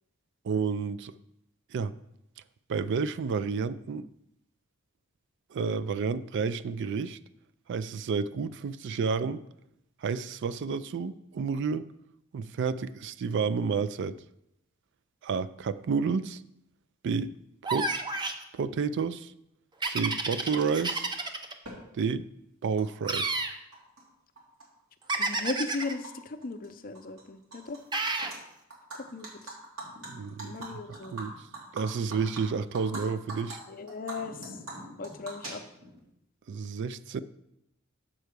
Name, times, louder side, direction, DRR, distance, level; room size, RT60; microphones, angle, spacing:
voice 1, 0.4-1.1 1.7-1.9 2.7-4.1 5.5-7.2 7.7-9.4 10.0-11.9 12.3-14.2 15.2-16.4 17.0-17.3 17.6-17.9 18.5-19.3 19.9-21.1 21.9-22.3 22.6-23.4 30.1-30.8 31.1-31.3 31.7-33.6 36.5-37.2, right 5 dB, 60° right, 15 dB, 0.4 m, -30 dB
sound 1, 17.6-18.4 19.8-21.5 23.0-23.5 25.1-25.9 27.9-28.3, right 3 dB, 20° right, 0.6 m, -30 dB
Animal, 21.6-21.7 22.8-22.9 23.1-24.0 24.4-26.1 26.4-26.7 26.9-27.8 28.1-28.4 28.7-33.0 33.3-33.5 33.9-36.0, right 2 dB, 85° right, 2.6 m, -42 dB
voice 2, 25.1-27.8 29.1-29.6 30.4-31.2 33.7-34.4 35.0-35.6, left 3 dB, 45° left, 9 dB, 0.6 m, -37 dB
7.5 x 4.6 x 6.6 m, 0.81 s
head